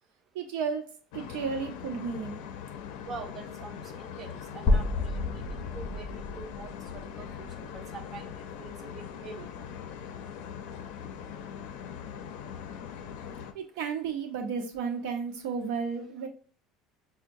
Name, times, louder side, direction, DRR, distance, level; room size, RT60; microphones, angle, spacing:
voice 1, 0.3-2.4 13.5-16.3, right 5 dB, 90° right, 4 dB, 0.8 m, -33 dB
sound 1, 1.1-13.5, left 8 dB, 75° left, 0.5 m, -41 dB
voice 2, 3.1-5.4 5.7-6.1 6.4-8.3 8.6-8.9 9.2-9.5, right 4 dB, 30° right, 5 dB, 0.4 m, -45 dB
sound 2, 4.7-8.6, left 2 dB, 30° left, 0.6 m, -31 dB
5.8 x 2.1 x 2.6 m, 0.36 s
cardioid pair, 165°, 0 cm